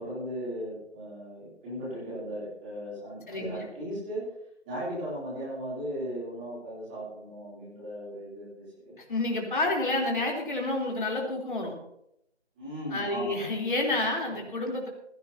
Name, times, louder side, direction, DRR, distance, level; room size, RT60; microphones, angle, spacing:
voice 1, 0.0-4.2 4.6-8.9 12.6-13.4 14.3-14.4, equal, 10° right, -9 dB, 3.0 m, -37 dB
voice 2, 9.1-11.7 12.9-14.9, left 2 dB, 45° left, 0 dB, 3.4 m, -29 dB
19.5 x 16.0 x 2.8 m, 0.77 s
figure-of-eight pair, 170°, 34 cm